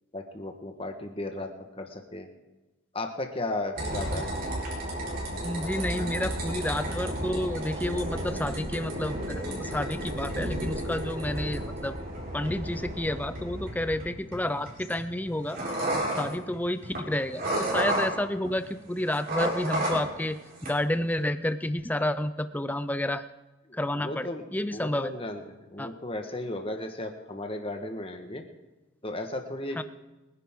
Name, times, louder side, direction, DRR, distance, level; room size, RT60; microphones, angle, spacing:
voice 1, 0.1-1.5 1.8-2.3 2.9-4.3 5.6-6.2 23.7-24.4 24.7-25.4 25.7-28.4 29.0-29.8, left 2 dB, 25° left, 4 dB, 1.5 m, -35 dB
sound 1, 3.8-18.7 19.0-20.3 20.6-21.1, right 1 dB, 45° right, 4.2 m, -32 dB
voice 2, 5.4-12.0 12.3-15.6 16.2-23.2 23.7-25.1 25.8-25.9 29.8-29.9, left 1 dB, 10° left, 12 dB, 0.5 m, -30 dB
24.0 x 10.5 x 3.8 m, 1.1 s
head